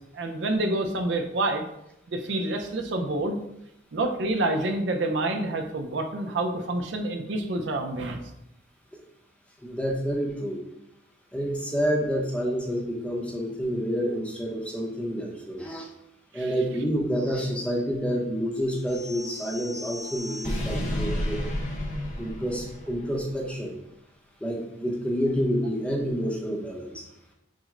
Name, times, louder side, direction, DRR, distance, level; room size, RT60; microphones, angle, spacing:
voice 1, 0.1-1.7 2.1-3.4 3.9-8.2 16.3-16.5, right 2 dB, 65° right, 5 dB, 0.5 m, -28 dB
voice 2, 9.6-10.6 11.3-15.9 16.3-21.4 22.2-23.7 24.4-27.0, equal, 5° left, -1 dB, 0.7 m, -28 dB
sound 1, 18.9-23.2, left 1 dB, 40° left, 0.8 m, -32 dB
6.1 x 2.1 x 3.7 m, 0.84 s
head